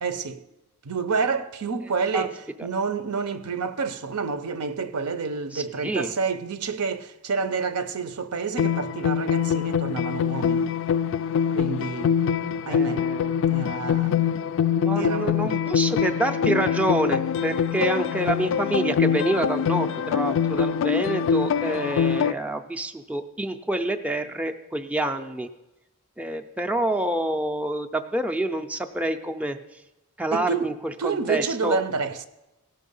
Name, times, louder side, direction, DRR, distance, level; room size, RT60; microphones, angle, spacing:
voice 1, 0.0-0.4 0.8-2.4 2.6-10.7 11.5-12.2 12.7-13.1 13.5-14.3 14.9-15.5 30.3-30.7 31.0-32.3, right 5 dB, 80° right, 0.7 m, -28 dB
voice 2, 5.5-6.1 12.7-13.4 14.8-25.5 26.2-29.6 30.2-31.8, right 1 dB, 5° right, 0.4 m, -27 dB
sound 1, 8.6-22.3, left 7 dB, 60° left, 0.3 m, -24 dB
16.5 x 5.8 x 5.4 m
head